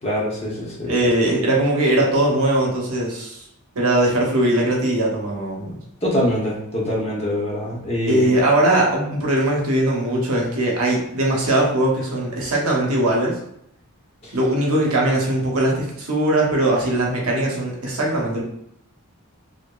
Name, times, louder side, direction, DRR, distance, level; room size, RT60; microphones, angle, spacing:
voice 1, 0.0-1.1 6.0-8.3 14.2-14.3, left 1 dB, 30° left, -4 dB, 0.7 m, -24 dB
voice 2, 0.8-3.4 3.7-5.8 8.1-13.4 14.3-18.4, right 1 dB, 70° right, -2 dB, 0.7 m, -20 dB
2.8 x 2.5 x 2.2 m, 0.75 s
head